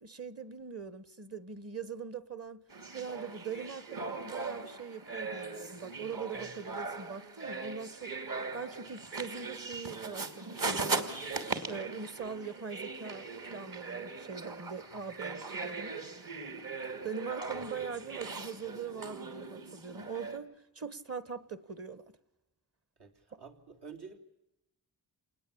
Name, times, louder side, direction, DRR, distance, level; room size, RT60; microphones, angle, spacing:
voice 1, 0.0-2.6 2.9-8.1 8.5-11.4 11.7-16.0 17.0-22.0, right 6 dB, 35° right, 1.3 m, -42 dB
sound 1, 2.7-20.4, right 4 dB, 55° right, 3.0 m, -39 dB
voice 2, 23.0-24.2, right 5 dB, 75° right, 3.7 m, -50 dB
28.0 x 20.0 x 8.7 m
wide cardioid pair, 130°, 40 cm